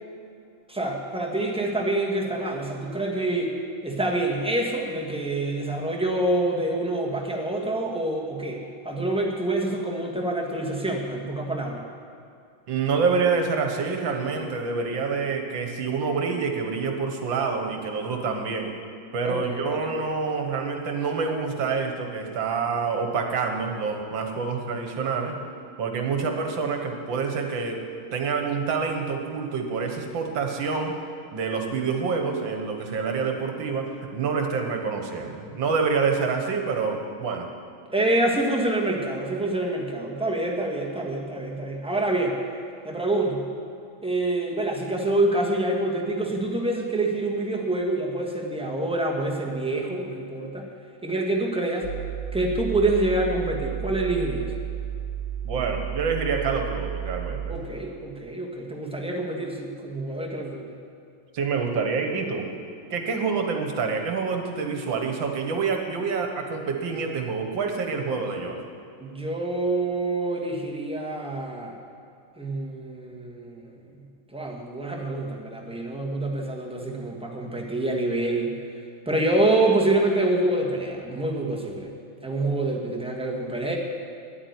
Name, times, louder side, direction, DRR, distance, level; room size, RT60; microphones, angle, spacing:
voice 1, 0.7-3.5 3.8-11.8 19.2-19.4 19.7-20.0 37.9-42.4 42.8-43.4 44.0-50.7 51.0-51.9 52.3-54.5 57.5-60.7 69.0-71.8 72.4-73.8 74.3-78.6 79.0-81.9 82.2-83.8, right 2 dB, 5° right, -2 dB, 1.1 m, -26 dB
voice 2, 12.7-18.7 19.1-25.4 25.8-27.8 28.1-30.9 31.3-37.5 55.4-57.4 61.3-62.5 62.9-68.6, right 5 dB, 70° right, 4 dB, 1.9 m, -27 dB
sound 1, 51.8-57.6, right 9 dB, 45° left, 2.9 m, -32 dB
10.0 x 8.6 x 9.4 m, 2.5 s
omnidirectional pair, 2.2 m